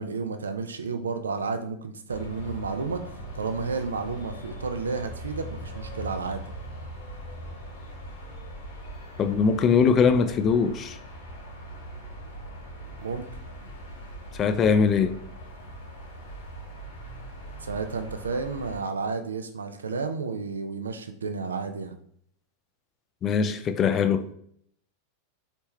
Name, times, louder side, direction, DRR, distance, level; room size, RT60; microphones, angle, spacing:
voice 1, 0.0-3.0 3.4-6.4 13.0-13.3 17.6-22.0, right 4 dB, 70° right, 0.5 m, -31 dB
sound 1, 2.1-18.8, right 1 dB, 65° left, 1.6 m, -41 dB
voice 2, 9.2-11.0 14.4-15.2 23.2-24.3, left 6 dB, 30° left, 0.4 m, -21 dB
4.3 x 3.3 x 3.0 m
figure-of-eight pair, 90°, 0 cm